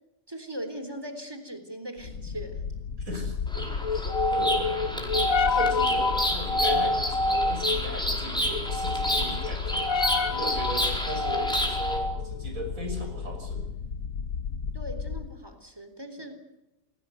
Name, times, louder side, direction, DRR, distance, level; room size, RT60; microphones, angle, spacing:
voice 1, 0.3-2.6 14.7-16.4, equal, 15° right, 8 dB, 3.8 m, -39 dB
sound 1, 2.0-15.4, left 3 dB, 80° left, 1.6 m, -29 dB
voice 2, 3.0-13.6, right 1 dB, 85° right, 4 dB, 6.7 m, -37 dB
Bird vocalization bird call bird song, 3.5-12.0, equal, 5° left, 4.8 m, -31 dB
28.5 x 19.5 x 8.0 m, 0.97 s
omnidirectional pair, 1.4 m